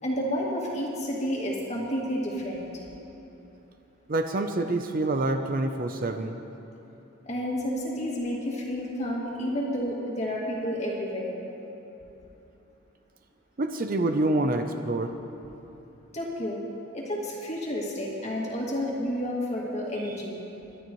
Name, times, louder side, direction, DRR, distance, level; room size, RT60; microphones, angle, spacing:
voice 1, 0.0-2.8 7.3-11.4 16.1-16.6 16.9-20.4, equal, 35° left, -3 dB, 2.2 m, -30 dB
voice 2, 4.1-6.4 13.6-15.1, right 2 dB, 45° right, 6 dB, 0.6 m, -27 dB
23.5 x 12.0 x 3.1 m, 2.9 s
head